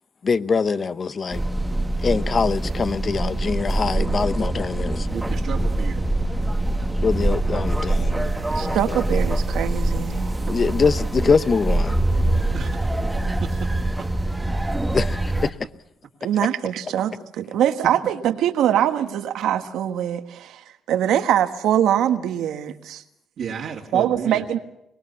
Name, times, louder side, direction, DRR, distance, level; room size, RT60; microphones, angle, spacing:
voice 1, 0.2-1.4 2.0-5.1 7.0-8.3 8.5-9.0 10.5-12.0 14.9-15.5, left 5 dB, 40° left, 0.8 m, -23 dB
sound 1, 1.3-15.5, right 1 dB, 10° right, 1.3 m, -24 dB
voice 2, 5.1-6.0 6.4-6.5 10.4-10.7 12.5-12.7 13.4-13.5 23.4-24.5, right 7 dB, 65° right, 2.2 m, -32 dB
voice 3, 8.5-10.3 16.2-23.0 23.9-24.6, right 10 dB, 80° right, 1.4 m, -23 dB
23.5 x 19.0 x 6.9 m
cardioid pair, 90°, 0 cm